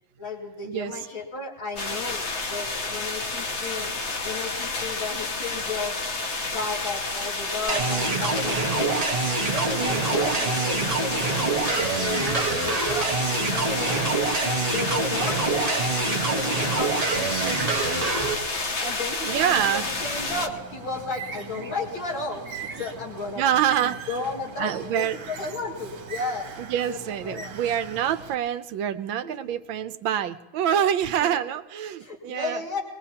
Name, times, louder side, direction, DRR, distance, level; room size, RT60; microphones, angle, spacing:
voice 1, 0.2-3.9 4.2-6.0 6.4-9.0 9.5-13.1 13.5-14.0 14.4-18.4 18.8-23.4 23.8-26.5 26.9-27.5 29.2-29.6 31.2-31.5 32.0-32.8, left 3 dB, 85° left, -4 dB, 3.0 m, -34 dB
sound 1, 1.8-20.5, left 3 dB, 40° left, 1.2 m, -30 dB
sound 2, 7.7-18.3, right 3 dB, 30° right, 0.8 m, -26 dB
voice 2, 9.7-10.1 19.3-19.9 23.4-24.1 24.6-25.1 26.6-32.6, right 10 dB, 80° right, 11 dB, 1.5 m, -26 dB
Bird, 19.2-28.3, right 5 dB, 60° right, 1.8 m, -40 dB
22.0 x 20.5 x 2.9 m, 1.1 s
omnidirectional pair, 2.1 m